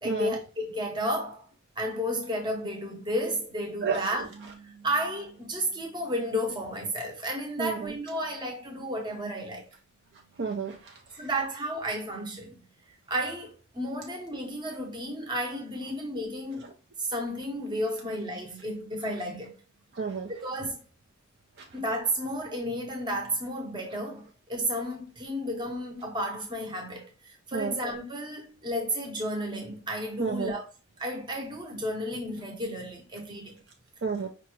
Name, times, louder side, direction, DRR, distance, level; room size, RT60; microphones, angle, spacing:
voice 1, 0.0-1.5 1.8-9.7 11.2-12.6 13.1-16.7 17.0-19.5 20.3-20.8 21.7-30.6 31.0-33.5, equal, 20° right, 0.8 m, -32 dB
voice 2, 3.8-4.3 7.6-7.9 10.4-10.9 19.9-20.3 27.5-27.8 30.2-30.5 34.0-34.3, right 5 dB, 50° right, 0.5 m, -30 dB
5.0 x 2.3 x 2.9 m
head